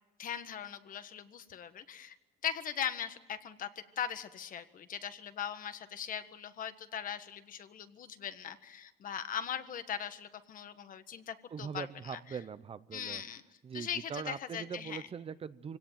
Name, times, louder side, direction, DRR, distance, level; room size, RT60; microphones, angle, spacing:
voice 1, 0.2-2.1 2.4-12.4 12.9-13.4 13.7-15.0, left 9 dB, 55° left, 10 dB, 1.5 m, -40 dB
voice 2, 11.5-13.2 13.6-15.8, right 6 dB, 35° right, 15 dB, 0.7 m, -41 dB
24.5 x 17.5 x 9.2 m, 1.1 s
cardioid pair, 110°, 17 cm